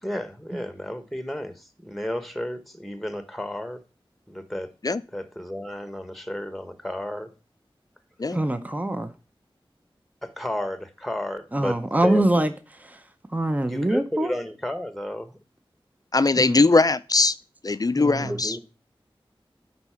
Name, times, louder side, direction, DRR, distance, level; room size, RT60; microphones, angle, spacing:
voice 1, 0.0-3.8 4.3-4.7 5.1-7.3 10.2-12.2 13.6-15.4 18.2-18.6, left 1 dB, ahead, 1.1 m, -32 dB
voice 2, 8.3-9.1 11.5-12.5 12.8-13.0 13.3-14.3 16.4-16.6 18.0-18.4, right 1 dB, 15° right, 0.7 m, -24 dB
voice 3, 16.1-17.3 17.6-18.6, left 3 dB, 40° left, 0.4 m, -20 dB
9.6 x 4.1 x 5.6 m
wide cardioid pair, 60°, 10 cm